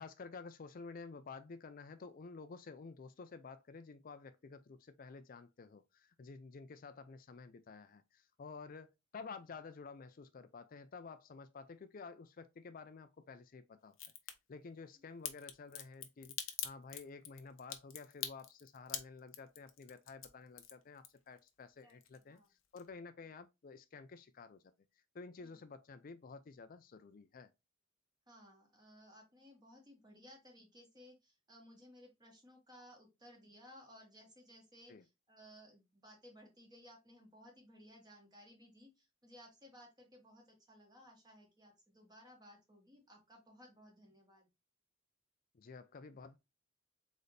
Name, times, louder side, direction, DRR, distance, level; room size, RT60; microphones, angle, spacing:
voice 1, 0.0-14.0 14.5-16.4 16.6-24.6 25.1-27.5 34.9-35.0 45.5-46.4, left 4 dB, 45° left, 0.4 m, -51 dB
Crack, 13.9-14.3 15.2-21.5 21.8-22.5 22.8-22.9, left 11 dB, 85° left, 0.8 m, -43 dB
voice 2, 21.8-22.5 25.4-25.6 28.3-44.5, equal, 20° right, 1.8 m, -60 dB
4.0 x 4.0 x 3.3 m
head